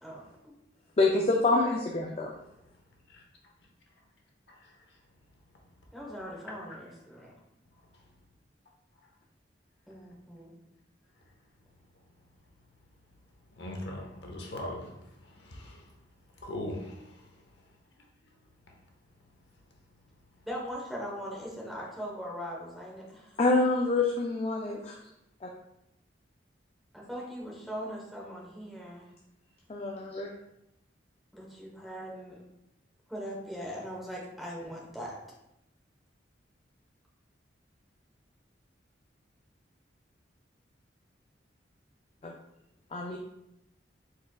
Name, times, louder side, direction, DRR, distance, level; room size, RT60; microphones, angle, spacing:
voice 1, 1.0-2.3 23.4-25.0 25.4-25.5 29.7-30.3 42.2-42.3 42.9-43.2, left 3 dB, 30° left, 0 dB, 0.4 m, -26 dB
voice 2, 5.9-7.3 9.9-10.5 20.4-23.4 26.9-29.1 31.3-32.4 33.1-35.2, equal, ahead, -4 dB, 1.0 m, -40 dB
voice 3, 13.6-14.9 15.4-15.8 16.4-17.1, left 1 dB, 65° left, 0 dB, 0.9 m, -39 dB
4.6 x 4.4 x 2.2 m, 0.84 s
head